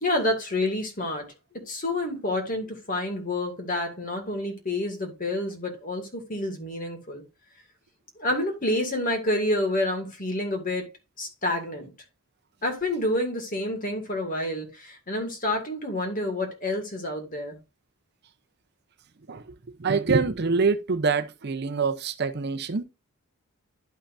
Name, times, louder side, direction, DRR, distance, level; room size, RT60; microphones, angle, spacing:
voice 1, 0.0-1.3 1.5-7.2 8.2-10.9 11.2-11.9 12.6-17.6, left 1 dB, 40° left, 2.2 m, -28 dB
voice 2, 19.8-22.8, right 4 dB, 45° right, 0.6 m, -25 dB
11.5 x 5.6 x 2.6 m
head